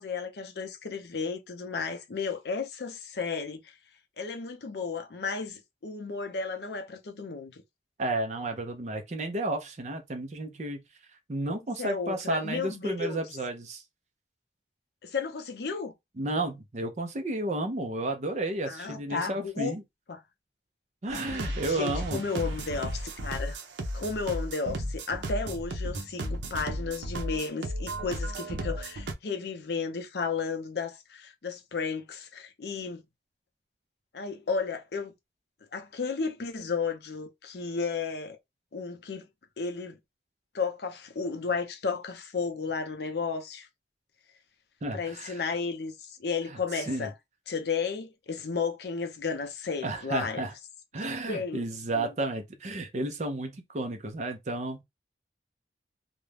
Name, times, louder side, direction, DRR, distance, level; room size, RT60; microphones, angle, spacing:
voice 1, 0.0-3.7 4.2-7.6 11.8-13.2 15.0-15.9 18.7-19.8 20.1-20.2 21.2-23.6 23.9-33.0 34.1-35.1 35.7-38.4 38.7-39.3 39.6-40.0 40.5-43.7 44.9-47.1 47.5-50.5 51.3-51.6 51.9-52.1, left 5 dB, 65° left, 0.5 m, -33 dB
voice 2, 8.0-10.8 11.3-13.8 16.2-19.8 21.0-22.2 44.8-45.4 46.5-47.1 49.8-50.5 50.9-54.8, right 2 dB, 40° right, 0.5 m, -32 dB
sound 1, 21.1-29.1, right 1 dB, 85° right, 0.6 m, -34 dB
2.4 x 2.1 x 3.2 m
head